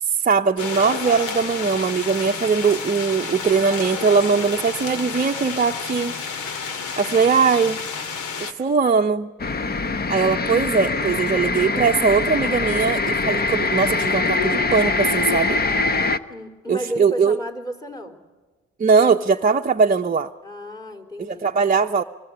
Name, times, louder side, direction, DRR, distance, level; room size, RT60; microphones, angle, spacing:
voice 1, 0.0-6.1 7.0-7.8 8.4-9.3 10.1-15.6 16.7-17.4 18.8-20.3 21.2-22.0, right 5 dB, 25° right, 3 dB, 0.8 m, -20 dB
sound 1, 0.6-8.5, left 5 dB, 85° left, 2.2 m, -30 dB
sound 2, 9.4-16.2, left 3 dB, 30° left, 1.1 m, -23 dB
voice 2, 16.3-18.2 20.4-21.5, equal, 10° left, 6 dB, 3.5 m, -33 dB
24.5 x 22.0 x 8.8 m, 1.3 s
cardioid pair, 90°, 30 cm